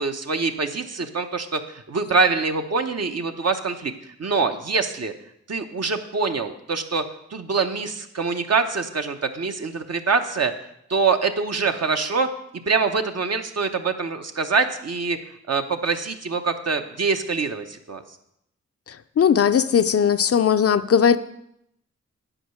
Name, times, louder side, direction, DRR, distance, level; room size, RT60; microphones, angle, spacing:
voice 1, 0.0-3.9 4.2-5.1 5.5-7.0 7.3-10.5 10.9-12.3 12.7-15.2 15.5-18.0, right 4 dB, 60° right, 6 dB, 0.9 m, -24 dB
voice 2, 19.2-21.2, left 7 dB, 55° left, 11 dB, 0.5 m, -18 dB
8.6 x 5.1 x 6.3 m, 0.78 s
cardioid pair, 50°, 29 cm